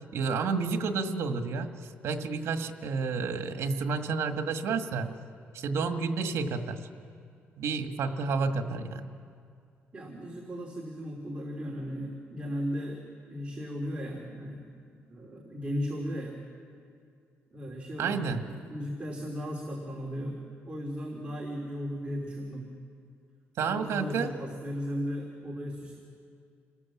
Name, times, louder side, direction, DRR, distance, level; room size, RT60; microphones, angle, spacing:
voice 1, 0.1-1.7 2.0-5.1 5.5-6.8 7.6-9.1 18.0-18.4 23.6-24.3, right 4 dB, 70° right, 6 dB, 1.7 m, -30 dB
voice 2, 9.9-14.6 15.1-16.4 17.5-20.4 20.6-22.7 23.7-26.0, equal, 25° right, -1 dB, 3.1 m, -36 dB
28.0 x 19.5 x 7.4 m, 2.3 s
cardioid pair, 120°, 5 cm